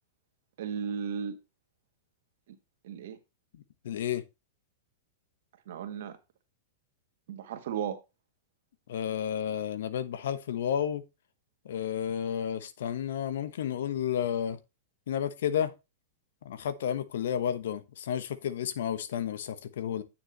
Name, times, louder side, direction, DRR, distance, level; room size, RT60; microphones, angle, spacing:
voice 1, 0.6-1.4 2.8-3.2 5.7-6.2 7.3-8.0, right 7 dB, 70° right, 1.7 m, -35 dB
voice 2, 3.5-4.2 8.9-11.0 11.6-14.6 15.1-15.7 16.4-20.0, left 9 dB, 75° left, 1.0 m, -31 dB
9.0 x 7.0 x 3.0 m
hypercardioid pair, 115°, 0 cm